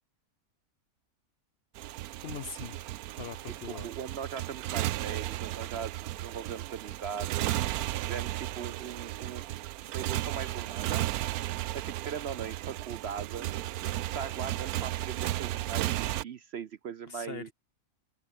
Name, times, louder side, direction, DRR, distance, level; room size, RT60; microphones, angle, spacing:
Motorcycle, 1.8-16.2, right 14 dB, 85° right, 1.1 m, -34 dB
voice 1, 2.2-2.8 3.2-3.9 17.1-17.5, left 6 dB, 50° left, 0.8 m, -41 dB
voice 2, 3.5-7.5 8.1-9.4 9.9-11.1 11.7-13.5 14.1-17.5, right 7 dB, 55° right, 0.8 m, -40 dB
omnidirectional pair, 1.5 m